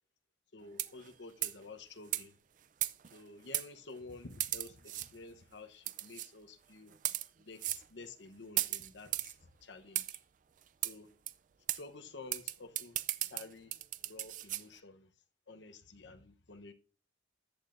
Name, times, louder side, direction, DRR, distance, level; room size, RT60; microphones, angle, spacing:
voice 1, 0.5-2.3 3.1-7.0 7.4-10.2 10.8-11.1 11.7-13.0 13.3-13.7 14.0-15.1 15.5-16.7, left 3 dB, 75° left, 0.9 m, -51 dB
sound 1, 0.7-1.1 1.4-1.6 2.1-2.2 2.8-3.2 3.5-3.7 4.4-5.1 5.9-6.3 6.9-7.3 7.6-7.8 8.6-9.3 10.0-10.2 10.8-10.9 11.3-11.4 11.7-11.8 12.3-14.6, right 14 dB, 45° right, 0.4 m, -36 dB
13.5 x 8.7 x 2.6 m
head